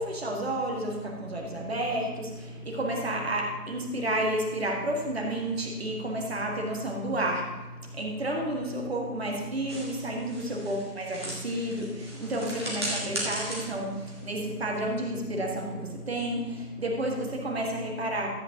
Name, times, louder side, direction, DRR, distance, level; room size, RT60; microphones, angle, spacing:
voice 1, 0.0-18.3, right 1 dB, 40° right, 1 dB, 1.7 m, -31 dB
sound 1, 9.7-15.0, right 1 dB, 15° right, 1.4 m, -37 dB
13.5 x 8.4 x 2.9 m, 1.2 s
figure-of-eight pair, 160°, 50 cm